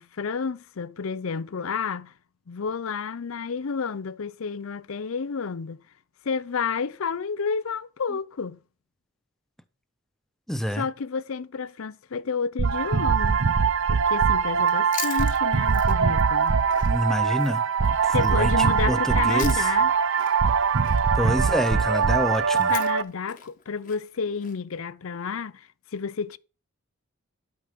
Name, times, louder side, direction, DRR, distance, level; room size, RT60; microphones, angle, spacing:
voice 1, 0.0-2.1 2.5-5.8 6.2-8.6 10.7-13.4 13.9-16.5 18.1-19.9 22.7-26.4, left 5 dB, 75° left, 0.5 m, -30 dB
voice 2, 10.5-10.9 16.8-19.7 21.1-22.7, equal, ahead, 0.6 m, -27 dB
sound 1, 12.6-23.0, right 6 dB, 60° right, 0.6 m, -22 dB
Chewing mastication, 14.6-19.9 20.2-24.6, left 9 dB, 35° left, 1.2 m, -42 dB
12.0 x 5.0 x 6.7 m
head